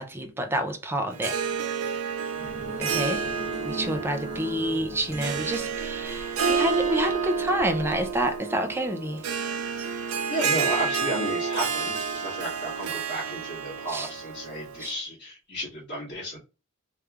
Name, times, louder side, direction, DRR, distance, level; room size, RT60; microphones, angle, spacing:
voice 1, 0.0-1.4 2.8-3.3 3.6-9.3 13.9-14.1 14.8-14.9, right 1 dB, 10° right, 0.4 m, -28 dB
Harp, 1.1-14.9, right 6 dB, 80° right, 0.5 m, -30 dB
sound 1, 2.3-8.4, right 1 dB, 50° right, 1.3 m, -39 dB
voice 2, 10.3-16.4, right 1 dB, 50° left, 1.7 m, -33 dB
3.3 x 3.2 x 2.4 m
head